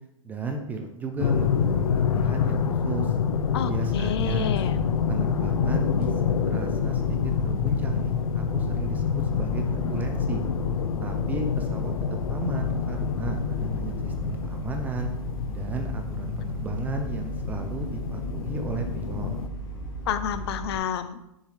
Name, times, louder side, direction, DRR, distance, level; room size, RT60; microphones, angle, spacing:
voice 1, 0.2-1.7 1.9-3.1 3.7-4.6 5.1-10.4 11.0-11.9 12.3-15.1 15.5-19.4, right 3 dB, 10° right, 4 dB, 0.4 m, -34 dB
sound 1, 1.2-19.5, left 7 dB, 85° left, 0.6 m, -27 dB
voice 2, 3.5-4.8 20.1-21.3, left 9 dB, 50° left, 12 dB, 0.5 m, -30 dB
sound 2, 3.9-20.8, right 3 dB, 30° left, 1.6 m, -37 dB
6.6 x 6.5 x 3.2 m, 0.88 s
hypercardioid pair, 155°, 18 cm